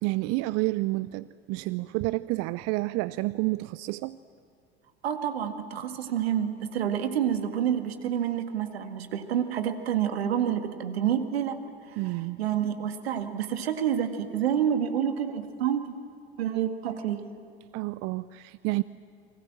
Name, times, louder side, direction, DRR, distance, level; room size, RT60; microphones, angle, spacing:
voice 1, 0.0-4.2 12.0-12.4 17.7-18.8, right 21 dB, 50° right, 17 dB, 0.6 m, -29 dB
voice 2, 5.0-11.6 11.9-12.0 12.4-16.0 16.4-17.2, right 9 dB, 75° right, 7 dB, 1.9 m, -28 dB
29.5 x 24.0 x 7.6 m, 2.3 s
figure-of-eight pair, 70°, 31 cm